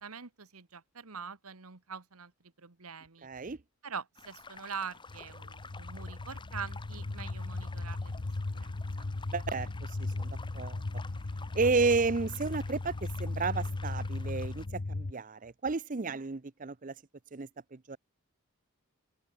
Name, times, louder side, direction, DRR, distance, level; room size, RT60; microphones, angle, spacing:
voice 1, 0.0-2.3 2.6-3.3 3.8-8.1 8.5-8.7 9.0-9.1, right 6 dB, 90° right, 1.6 m, -44 dB
voice 2, 3.2-3.6 9.3-10.8 11.5-16.9 17.3-18.0, right 4 dB, 35° right, 0.6 m, -32 dB
sound 1, 4.2-14.7, left 4 dB, 20° left, 4.2 m, -52 dB
sound 2, 5.1-15.1, left 2 dB, 50° left, 0.8 m, -37 dB
open air
head